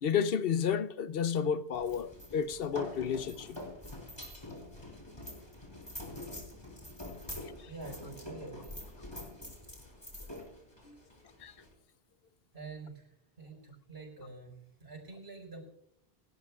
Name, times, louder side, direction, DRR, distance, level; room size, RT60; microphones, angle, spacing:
voice 1, 0.0-3.6 10.9-11.0 11.4-11.5, left 7 dB, 70° left, 0.8 m, -31 dB
sound 1, 1.7-11.7, left 1 dB, 25° left, 3.8 m, -45 dB
voice 2, 7.7-8.8 12.5-13.1 13.4-14.5 14.8-15.6, right 3 dB, 80° right, 4.9 m, -46 dB
27.5 x 12.5 x 2.4 m
omnidirectional pair, 1.0 m